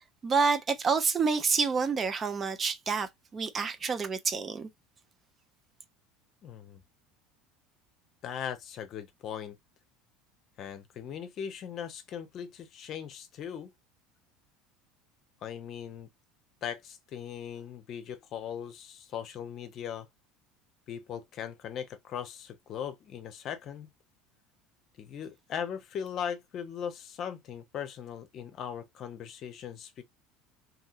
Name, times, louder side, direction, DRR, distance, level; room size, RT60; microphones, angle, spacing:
voice 1, 0.2-4.7, right 5 dB, 35° right, 0.7 m, -28 dB
voice 2, 6.4-6.8 8.2-9.6 10.6-13.7 15.4-16.1 16.6-20.1 20.9-23.9 25.0-30.0, left 8 dB, 50° left, 0.7 m, -39 dB
2.8 x 2.7 x 2.4 m
hypercardioid pair, 70°, 0 cm